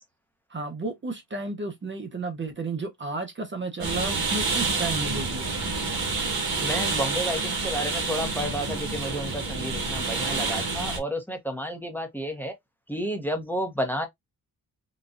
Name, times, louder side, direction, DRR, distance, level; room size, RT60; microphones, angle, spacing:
voice 1, 0.5-5.7, right 3 dB, 30° right, 0.7 m, -33 dB
sound 1, 3.8-11.0, right 3 dB, 75° right, 1.3 m, -28 dB
voice 2, 6.6-12.5 12.9-14.1, equal, 5° left, 0.8 m, -31 dB
3.9 x 2.2 x 2.4 m
wide cardioid pair, 110°, 38 cm